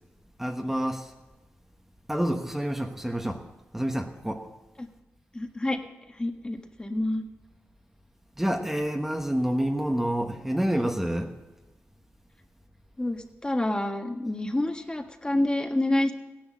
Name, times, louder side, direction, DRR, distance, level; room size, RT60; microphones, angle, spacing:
voice 1, 0.4-1.1 2.1-3.4 3.7-4.5 8.4-11.3, equal, 5° right, 3 dB, 1.2 m, -28 dB
voice 2, 5.3-5.8 6.2-7.2 13.0-16.1, left 1 dB, 20° left, 5 dB, 1.5 m, -28 dB
16.0 x 10.5 x 7.5 m, 1.1 s
cardioid pair, 75°, 5 cm